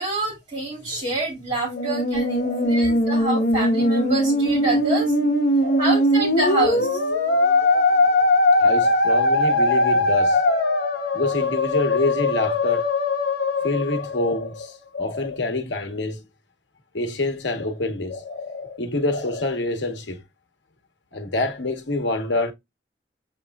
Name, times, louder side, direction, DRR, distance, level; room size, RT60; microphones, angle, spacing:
voice 1, 0.0-5.1 5.8-7.0, right 2 dB, 30° right, 2.3 m, -27 dB
Musical instrument, 1.5-14.9, left 1 dB, 55° left, 1.1 m, -20 dB
voice 2, 2.2-2.9 5.6-6.1 6.5-6.8 8.6-10.9 11.1-12.9 13.5-16.2 16.9-20.2 21.1-22.5, left 2 dB, 75° left, 1.0 m, -27 dB
7.4 x 3.0 x 2.2 m
head